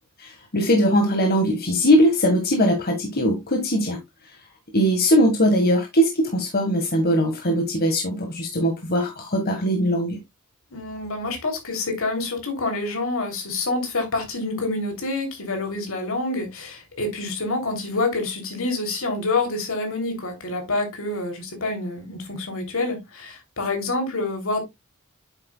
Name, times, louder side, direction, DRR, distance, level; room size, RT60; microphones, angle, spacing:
voice 1, 0.2-4.0 4.7-10.2, equal, 45° left, 1.6 m, -20 dB
voice 2, 10.7-24.6, left 2 dB, 65° left, 3.1 m, -27 dB
9.0 x 7.6 x 2.3 m
head